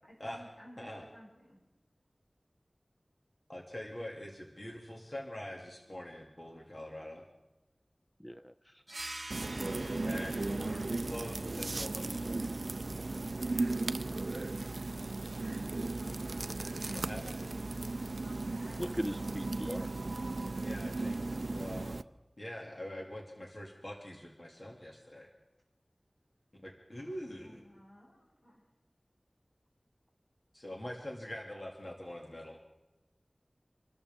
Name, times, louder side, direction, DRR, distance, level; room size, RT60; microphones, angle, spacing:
voice 1, 0.0-1.6 17.2-19.0 27.4-28.6, equal, 75° left, -5 dB, 7.3 m, -55 dB
voice 2, 3.5-7.2 9.8-12.5 16.9-17.3 20.6-21.2 21.5-21.9 22.4-25.3 26.6-27.6 30.5-32.6, left 1 dB, 40° left, -1 dB, 2.6 m, -44 dB
voice 3, 8.2-8.8 18.8-19.9, equal, 5° left, 11 dB, 0.5 m, -39 dB
sound 1, 8.9-14.0, right 1 dB, 40° right, 1.1 m, -49 dB
sound 2, 9.3-22.0, right 2 dB, 70° right, 0.5 m, -36 dB
27.0 x 13.5 x 3.7 m, 0.99 s
wide cardioid pair, 55°, 0 cm